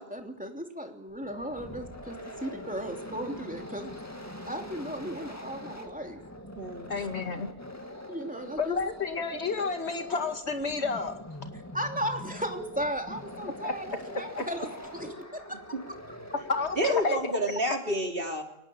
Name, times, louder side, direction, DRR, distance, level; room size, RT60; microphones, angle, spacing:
voice 1, 0.0-4.0 4.5-6.2 7.0-7.1 8.1-8.8 11.7-14.7 14.9-15.6, equal, 5° right, 3 dB, 2.9 m, -36 dB
sound 1, 1.1-17.2, left 1 dB, 15° left, 2.1 m, -43 dB
voice 2, 6.9-7.5 8.6-11.2 13.6-13.7 14.4-14.5 16.5-17.3, left 4 dB, 75° left, 6 dB, 2.3 m, -30 dB
voice 3, 16.8-18.4, equal, 55° right, 3 dB, 3.7 m, -29 dB
23.5 x 19.0 x 8.8 m, 0.79 s
omnidirectional pair, 1.1 m